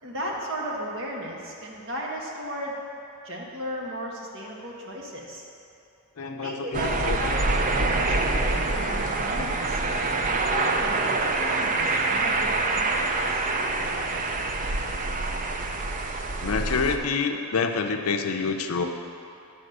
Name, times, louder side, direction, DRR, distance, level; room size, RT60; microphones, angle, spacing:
voice 1, 0.0-2.7 3.2-5.5 6.2-7.6 7.9-9.8 10.3-13.4, equal, 60° right, -2 dB, 1.3 m, -35 dB
voice 2, 6.2-7.2 7.8-7.9 16.4-18.9, left 4 dB, 70° left, 5 dB, 0.6 m, -27 dB
sound 1, 6.7-17.0, right 3 dB, 35° right, 0.5 m, -26 dB
9.2 x 4.2 x 6.5 m, 2.7 s
head